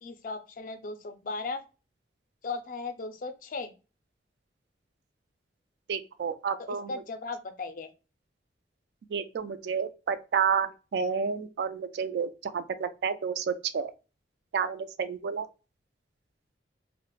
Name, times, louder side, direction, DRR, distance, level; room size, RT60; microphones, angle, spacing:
voice 1, 0.0-1.6 2.4-3.7 6.9-7.9, left 3 dB, 50° left, 0.4 m, -36 dB
voice 2, 5.9-7.0 9.1-13.9 14.5-15.5, right 6 dB, 70° right, 0.3 m, -30 dB
2.4 x 2.1 x 2.9 m
head